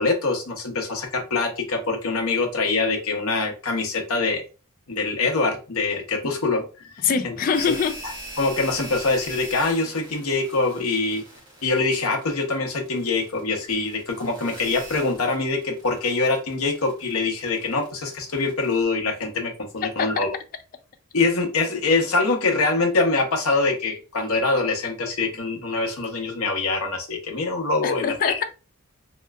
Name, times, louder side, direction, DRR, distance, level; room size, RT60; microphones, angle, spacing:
voice 1, 0.0-4.4 4.9-6.9 7.2-7.3 8.4-11.2 11.6-20.3 21.1-28.4, left 3 dB, 80° left, 0.9 m, -24 dB
voice 2, 7.0-7.9 20.0-20.3 27.8-28.4, left 6 dB, 40° left, 0.3 m, -23 dB
sound 1, 7.5-18.8, right 1 dB, 20° right, 1.5 m, -41 dB
3.3 x 2.9 x 2.3 m
head